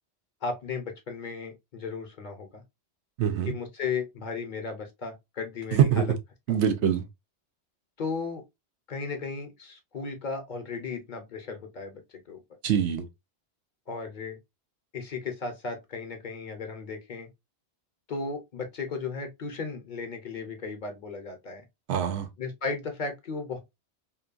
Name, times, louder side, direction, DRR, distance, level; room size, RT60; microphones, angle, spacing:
voice 1, 0.4-2.6 3.4-6.1 8.0-8.4 8.9-12.0 12.3-12.4 13.9-14.4 14.9-17.3 18.1-21.6 22.4-23.6, left 4 dB, 50° left, 0.7 m, -35 dB
voice 2, 3.2-3.5 5.7-6.0 6.5-7.1 12.6-13.0 21.9-22.3, right 8 dB, 85° right, 0.9 m, -24 dB
2.8 x 2.2 x 2.4 m
omnidirectional pair, 1.1 m